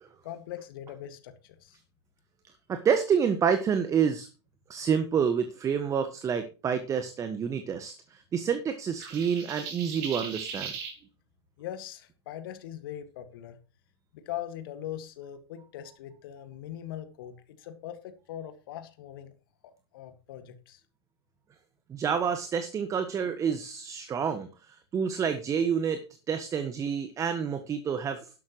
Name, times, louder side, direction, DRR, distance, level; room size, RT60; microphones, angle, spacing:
voice 1, 0.2-1.8 11.6-13.6 14.1-19.3 19.6-20.8, left 11 dB, 55° left, 9 dB, 1.9 m, -41 dB
voice 2, 2.7-4.3 4.7-10.7 21.9-28.3, right 7 dB, 20° right, 9 dB, 1.4 m, -28 dB
sound 1, 9.0-11.0, right 6 dB, 50° right, 5.5 m, -38 dB
12.5 x 11.5 x 3.1 m, 0.34 s
hypercardioid pair, 105°, 14 cm